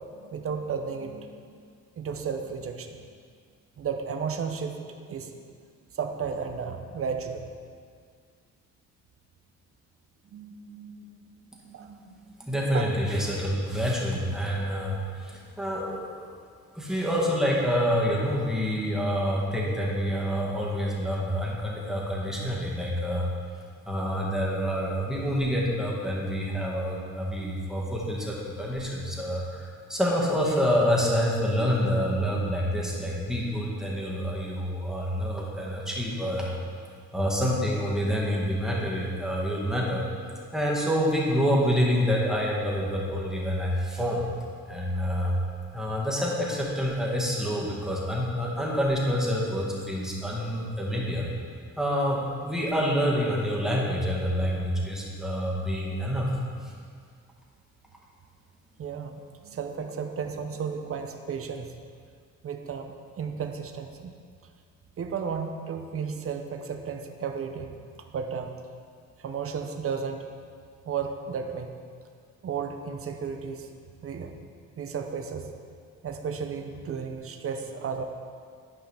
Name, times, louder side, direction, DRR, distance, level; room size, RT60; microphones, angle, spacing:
voice 1, 0.0-1.5 2.0-3.0 3.8-5.3 5.9-7.5 10.3-11.2 11.5-12.3 12.7-12.9 58.8-59.1 59.4-61.7 62.4-64.1 65.0-67.7 68.1-68.5 69.2-70.3 70.8-71.7 72.4-73.7 74.0-74.3 74.8-75.5 76.0-78.0, right 6 dB, 50° right, 5 dB, 0.8 m, -33 dB
voice 2, 12.4-16.3 16.8-23.3 23.9-36.5 37.1-40.0 40.5-44.3 44.7-45.4 45.7-51.2 51.8-56.3, equal, ahead, -5 dB, 1.8 m, -27 dB
11.5 x 5.5 x 3.5 m, 2.1 s
cardioid pair, 90°, 30 cm